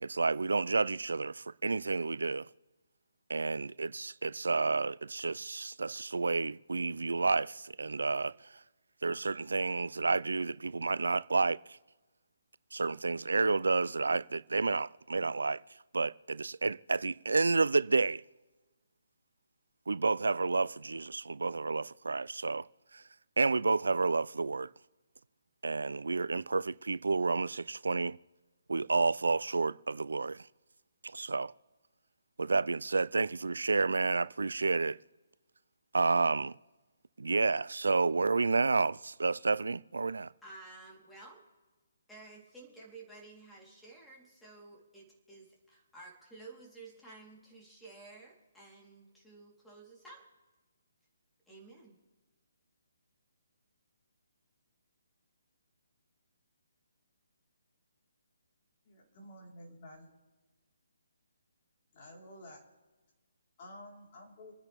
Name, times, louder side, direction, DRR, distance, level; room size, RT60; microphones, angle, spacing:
voice 1, 0.0-2.5 3.3-8.3 9.0-11.6 12.7-15.6 15.9-18.2 19.9-22.7 22.9-23.0 23.4-24.7 25.6-28.2 28.7-30.4 31.1-31.5 32.4-35.0 35.9-36.5 37.2-40.3, right 3 dB, 75° right, 0.4 m, -30 dB
voice 2, 40.4-41.5 42.1-50.2 51.5-52.0, right 3 dB, 5° left, 3.6 m, -53 dB
voice 3, 58.8-60.1 61.9-62.6 63.6-64.5, left 1 dB, 40° left, 4.3 m, -51 dB
28.5 x 9.9 x 3.6 m
figure-of-eight pair, 145°, 0 cm